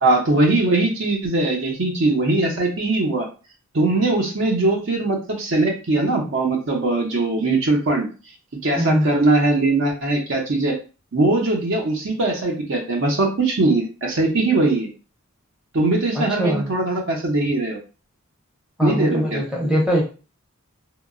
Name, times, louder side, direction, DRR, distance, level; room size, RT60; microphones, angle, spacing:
voice 1, 0.0-3.3 3.7-8.1 8.6-10.7 11.1-14.9 15.7-17.8 18.8-19.4, right 2 dB, 60° right, 1 dB, 0.7 m, -20 dB
voice 2, 8.8-9.1 16.1-16.7 18.8-20.0, equal, 5° right, -4 dB, 0.6 m, -21 dB
2.8 x 2.2 x 2.4 m, 0.34 s
head